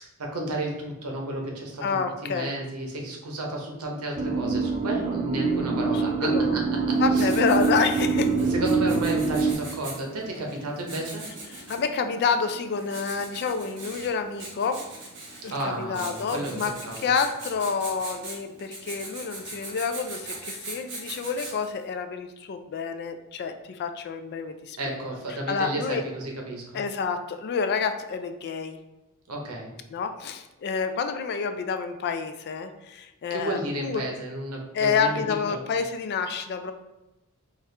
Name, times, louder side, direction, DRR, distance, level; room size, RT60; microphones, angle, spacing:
voice 1, 0.2-7.3 8.4-11.3 15.5-17.0 24.8-26.8 29.3-29.7 33.3-35.6, right 1 dB, 85° right, 0 dB, 0.8 m, -32 dB
voice 2, 1.8-2.5 5.9-6.6 7.0-8.3 11.7-14.8 15.4-25.0 25.5-26.0 26.7-28.8 29.9-34.0 34.7-36.7, left 5 dB, 50° left, 8 dB, 0.3 m, -28 dB
sound 1, 4.2-9.5, right 4 dB, 30° right, 0.4 m, -24 dB
Writing, 6.9-21.8, right 2 dB, 55° right, 1.1 m, -41 dB
4.2 x 2.4 x 3.3 m, 1.0 s
head